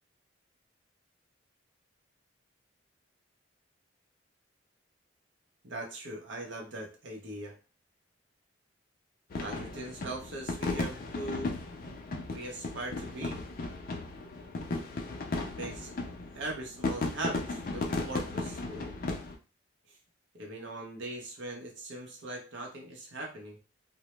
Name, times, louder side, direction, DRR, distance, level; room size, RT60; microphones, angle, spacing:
voice 1, 5.6-7.5 9.4-11.6 12.3-13.4 15.3-15.9 16.3-18.9 19.9-20.0 20.3-23.6, right 2 dB, 70° right, 0 dB, 0.7 m, -40 dB
sound 1, 9.3-19.3, left 2 dB, 50° left, 0.4 m, -36 dB
2.1 x 2.0 x 2.9 m, 0.33 s
head